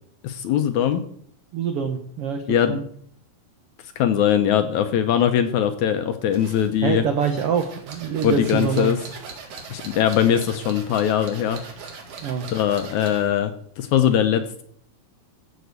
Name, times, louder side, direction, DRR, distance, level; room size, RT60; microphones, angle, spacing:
voice 1, 0.2-1.0 2.5-2.8 4.0-7.1 8.2-9.0 9.7-11.6 12.5-14.6, left 9 dB, 75° left, 8 dB, 1.9 m, -21 dB
voice 2, 1.5-2.8 6.8-8.9 12.2-12.5, right 7 dB, 85° right, 7 dB, 1.3 m, -25 dB
sound 1, 6.3-13.3, right 4 dB, 60° right, 3.5 m, -40 dB
15.0 x 5.3 x 8.0 m, 0.64 s
omnidirectional pair, 4.0 m